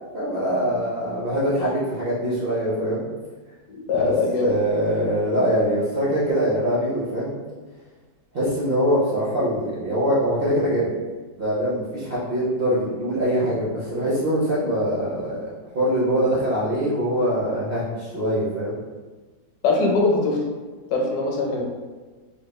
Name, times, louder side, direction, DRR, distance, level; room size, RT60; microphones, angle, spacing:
voice 1, 0.1-3.1 3.9-4.1 4.4-7.4 8.3-10.9 11.4-18.8, equal, 60° right, -8 dB, 0.6 m, -23 dB
voice 2, 3.7-4.5 19.6-20.4 20.9-21.6, left 3 dB, 70° left, -1 dB, 1.1 m, -22 dB
3.3 x 3.0 x 2.3 m, 1.3 s
omnidirectional pair, 1.9 m